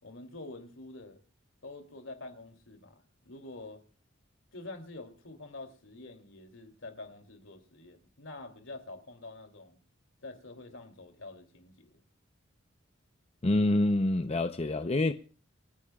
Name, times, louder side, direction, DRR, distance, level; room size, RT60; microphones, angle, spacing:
voice 1, 0.0-1.2 1.6-3.8 4.5-9.8 10.2-12.0, left 2 dB, 70° left, 2.7 m, -47 dB
voice 2, 13.4-15.1, left 2 dB, 30° left, 0.6 m, -26 dB
29.5 x 10.0 x 2.3 m
head